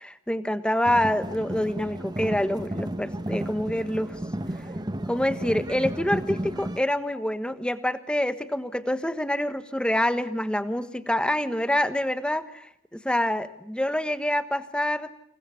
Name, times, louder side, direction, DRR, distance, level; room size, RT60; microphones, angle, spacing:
voice 1, 0.0-4.2 5.1-15.1, left 1 dB, 5° left, 11 dB, 1.3 m, -26 dB
sound 1, 0.8-6.8, right 1 dB, 20° right, 1.1 m, -33 dB
29.0 x 27.5 x 7.1 m, 0.73 s
head